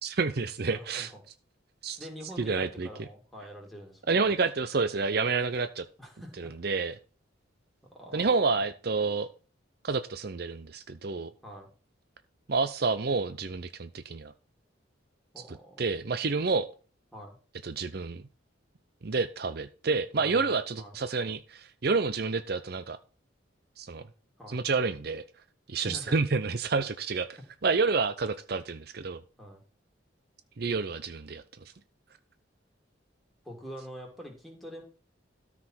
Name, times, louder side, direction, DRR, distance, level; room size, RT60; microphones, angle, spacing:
voice 1, 0.0-1.1 1.8-2.0 2.4-2.9 4.1-5.8 6.4-6.9 8.1-9.3 9.8-11.3 12.5-14.3 15.5-16.7 17.6-18.2 19.0-23.0 23.8-24.0 24.5-25.2 25.7-27.3 27.6-29.2 30.6-31.7, right 4 dB, 50° right, 11 dB, 0.6 m, -29 dB
voice 2, 0.6-1.2 2.0-4.3 6.0-6.5 7.9-8.3 11.4-11.7 15.3-16.0 17.1-17.4 20.1-20.5 20.8-20.9 24.4-24.6 25.9-26.2 29.4-29.6 33.4-34.8, equal, ahead, -1 dB, 3.3 m, -45 dB
13.5 x 5.0 x 6.0 m, 0.38 s
head